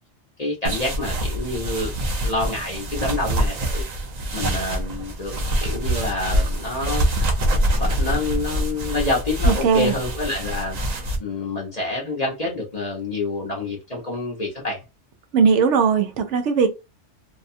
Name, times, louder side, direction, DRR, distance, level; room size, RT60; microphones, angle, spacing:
voice 1, 0.4-1.9 2.2-3.8 4.3-5.3 5.6-7.1 7.8-10.8 11.2-14.8, left 2 dB, 40° left, 0.8 m, -27 dB
sound 1, 0.6-11.2, right 1 dB, 45° right, 0.6 m, -25 dB
voice 2, 9.5-9.9 15.3-16.7, right 6 dB, 75° right, 0.9 m, -18 dB
2.7 x 2.2 x 2.6 m
omnidirectional pair, 1.2 m